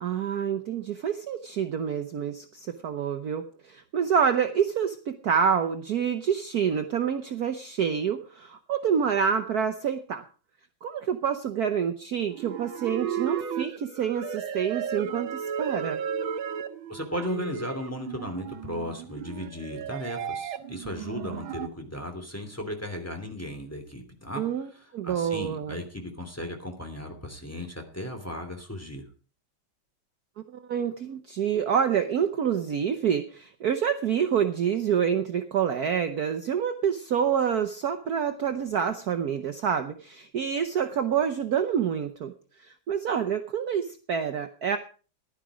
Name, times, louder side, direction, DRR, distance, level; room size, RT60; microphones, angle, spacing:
voice 1, 0.0-10.2 10.8-16.0 24.4-25.8 30.5-42.3 42.6-44.8, right 7 dB, 60° right, 8 dB, 1.2 m, -27 dB
sound 1, 12.3-21.7, right 8 dB, 85° right, 1.9 m, -34 dB
voice 2, 16.9-24.4 24.7-29.0, left 1 dB, 5° left, 4 dB, 2.8 m, -36 dB
15.5 x 11.5 x 4.9 m, 0.39 s
omnidirectional pair, 2.2 m